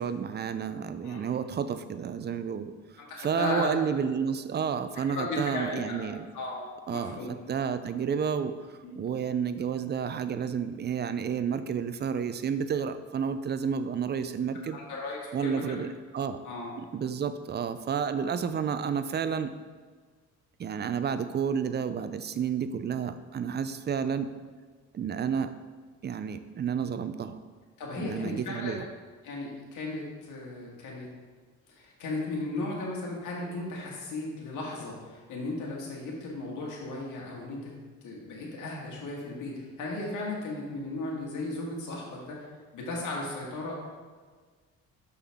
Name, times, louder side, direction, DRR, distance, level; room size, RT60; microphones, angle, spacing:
voice 1, 0.0-2.7 3.2-6.3 6.9-14.8 15.3-15.9 16.1-16.4 16.8-19.5 20.6-24.3 24.9-25.5 26.0-27.4 28.0-28.9, right 7 dB, 35° right, 11 dB, 0.4 m, -31 dB
voice 2, 3.0-3.7 5.1-6.1 6.3-6.6 6.9-7.3 8.8-8.9 14.7-15.8 16.4-16.7 27.8-28.8 29.2-31.1 31.7-37.7 38.0-42.5 42.7-43.8, left 2 dB, 80° left, -2 dB, 1.7 m, -35 dB
6.4 x 5.5 x 3.5 m, 1.5 s
cardioid pair, 90°, 30 cm